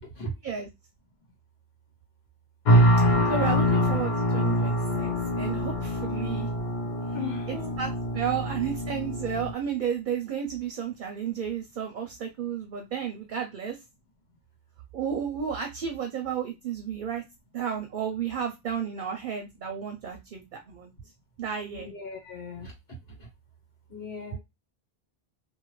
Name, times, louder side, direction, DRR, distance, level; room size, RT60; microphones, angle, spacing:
sound 1, 2.6-9.5, equal, 50° left, 0.7 m, -24 dB
voice 1, 3.3-6.5 7.5-13.8 14.9-17.2 17.5-20.9 21.4-21.9, right 8 dB, 60° right, 4 dB, 0.6 m, -32 dB
voice 2, 7.1-7.8 21.7-22.7 23.9-24.4, left 3 dB, 80° left, 0 dB, 1.6 m, -37 dB
2.5 x 2.5 x 3.0 m, 0.22 s
omnidirectional pair, 1.0 m